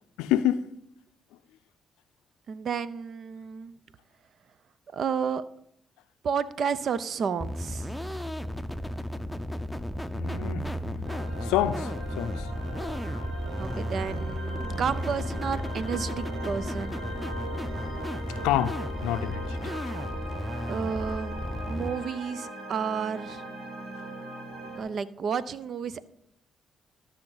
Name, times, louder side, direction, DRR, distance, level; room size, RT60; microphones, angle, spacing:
voice 1, 0.2-0.7 10.1-12.5 18.4-19.6, left 12 dB, 85° left, 0.4 m, -28 dB
voice 2, 2.5-3.7 4.9-5.4 6.2-8.0 13.6-17.0 20.7-23.4 24.8-26.1, right 6 dB, 60° right, 0.5 m, -31 dB
sound 1, 7.4-21.9, equal, ahead, 0.7 m, -34 dB
sound 2, 11.0-24.8, right 1 dB, 75° right, 2.4 m, -40 dB
13.5 x 5.8 x 4.0 m
supercardioid pair, 55°, 0 cm